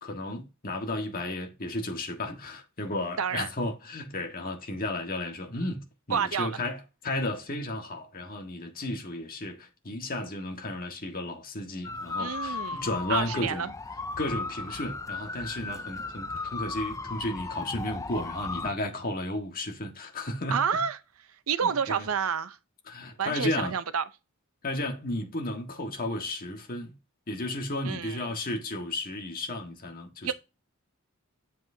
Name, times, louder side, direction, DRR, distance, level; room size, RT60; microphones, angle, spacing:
voice 1, 0.0-13.7 14.2-20.8 21.6-22.1 22.9-23.7 24.6-26.9 27.3-30.3, left 1 dB, 40° left, 1.6 m, -33 dB
voice 2, 3.2-3.5 6.1-6.6 12.2-13.7 20.5-21.0 21.5-22.6 23.2-24.0 27.8-28.3 30.2-30.3, right 7 dB, 70° right, 0.6 m, -29 dB
sound 1, 11.8-18.7, left 3 dB, 15° left, 0.3 m, -36 dB
7.8 x 7.5 x 2.8 m
head